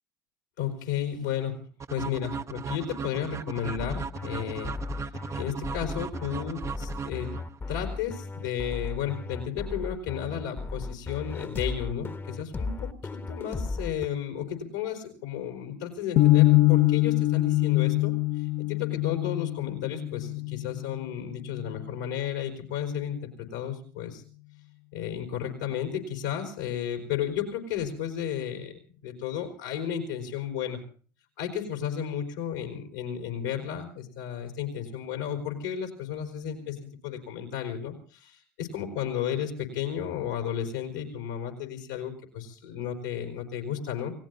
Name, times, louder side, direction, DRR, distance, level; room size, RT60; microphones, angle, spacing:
voice 1, 0.6-1.6 1.9-4.8 5.3-7.3 7.7-12.9 13.3-24.2 24.9-28.7 29.0-30.8 31.4-38.3 38.6-44.1, left 9 dB, 90° left, 1 dB, 4.6 m, -33 dB
sound 1, 1.8-7.8, right 6 dB, 30° right, 0.7 m, -37 dB
sound 2, 3.8-14.1, left 3 dB, 25° left, 1.1 m, -35 dB
sound 3, 16.2-22.2, left 18 dB, 65° left, 0.9 m, -24 dB
29.0 x 18.0 x 2.7 m, 0.42 s
hypercardioid pair, 70°, 10 cm